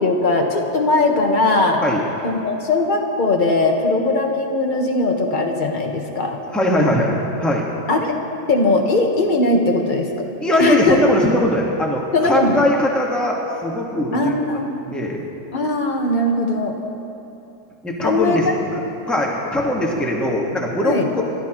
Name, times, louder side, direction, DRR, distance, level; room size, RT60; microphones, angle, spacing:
voice 1, 0.0-1.8 2.2-6.4 7.9-8.1 8.5-10.1 10.6-11.0 12.1-12.6 14.1-14.9 15.5-16.7 18.0-18.4 18.6-18.7 20.8-21.2, left 2 dB, 35° left, 2 dB, 1.4 m, -19 dB
voice 2, 6.5-7.7 10.4-14.3 14.8-15.2 17.8-18.8 19.1-21.2, left 1 dB, ahead, -2 dB, 1.4 m, -20 dB
29.0 x 12.5 x 3.0 m, 2.8 s
omnidirectional pair, 1.6 m